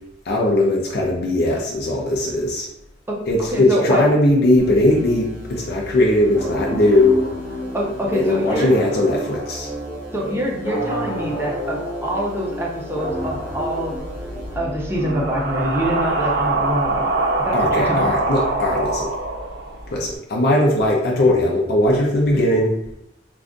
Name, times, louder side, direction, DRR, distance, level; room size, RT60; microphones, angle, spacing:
voice 1, 0.3-2.7 3.3-7.2 8.1-9.7 17.5-19.2 19.9-22.7, left 1 dB, 55° left, -2 dB, 0.5 m, -19 dB
voice 2, 3.1-4.0 7.7-8.7 10.1-14.0 14.6-18.1, equal, 15° right, -3 dB, 0.6 m, -25 dB
sound 1, 4.6-14.6, equal, 30° right, 1.0 m, -40 dB
sound 2, 6.3-15.8, equal, 15° left, 1.0 m, -30 dB
sound 3, 13.9-20.1, right 2 dB, 60° right, 0.5 m, -24 dB
2.4 x 2.3 x 3.7 m, 0.79 s
head